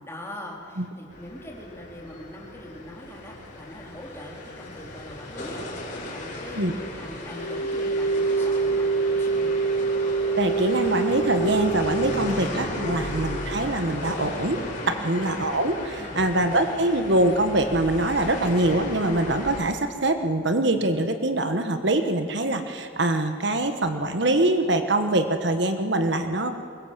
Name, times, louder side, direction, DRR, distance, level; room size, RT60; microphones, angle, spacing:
voice 1, 0.1-6.7 7.0-9.5 14.8-15.2 15.9-16.3, equal, 10° left, -1 dB, 3.8 m, -42 dB
sound 1, 1.1-19.6, left 1 dB, 40° left, 4.8 m, -35 dB
sound 2, 7.3-12.3, right 4 dB, 75° left, 1.0 m, -25 dB
voice 2, 10.4-14.6 14.9-26.5, right 1 dB, 60° right, 7 dB, 1.3 m, -24 dB
23.5 x 21.5 x 7.5 m, 2.7 s
head